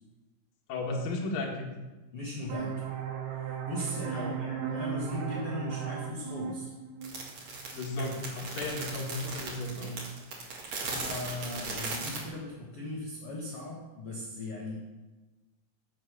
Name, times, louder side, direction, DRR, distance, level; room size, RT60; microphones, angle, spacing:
voice 1, 0.7-1.7 4.1-4.4 7.7-10.0, left 2 dB, 60° left, -1 dB, 2.8 m, -34 dB
voice 2, 2.1-2.9 3.3-6.7 10.2-14.8, left 1 dB, 85° left, -3 dB, 1.3 m, -38 dB
sound 1, 2.5-7.9, right 8 dB, 75° right, 3.0 m, -36 dB
sound 2, 7.0-12.2, right 3 dB, 45° right, 2.7 m, -37 dB
7.9 x 7.9 x 6.0 m, 1.2 s
omnidirectional pair, 5.2 m